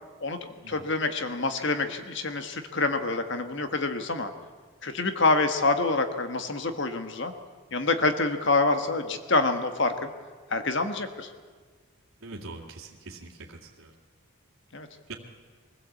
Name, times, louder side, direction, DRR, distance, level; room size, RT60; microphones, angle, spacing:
voice 1, 0.2-4.3 4.8-7.3 7.7-10.1 10.5-11.3 14.7-14.9, left 3 dB, 55° left, 7 dB, 1.5 m, -26 dB
voice 2, 12.2-13.9 15.1-15.2, right 3 dB, 70° right, -5 dB, 2.3 m, -43 dB
24.0 x 15.5 x 8.4 m, 1.5 s
head